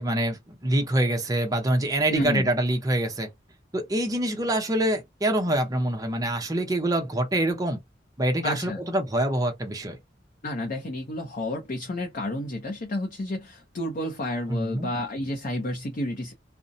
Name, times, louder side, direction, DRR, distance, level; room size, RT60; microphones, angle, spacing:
voice 1, 0.0-3.3 3.7-7.8 8.2-10.0 14.5-14.9, right 1 dB, 20° right, 0.6 m, -25 dB
voice 2, 2.1-2.5 8.4-8.8 10.4-16.3, left 1 dB, 45° left, 0.5 m, -30 dB
2.6 x 2.0 x 2.5 m
head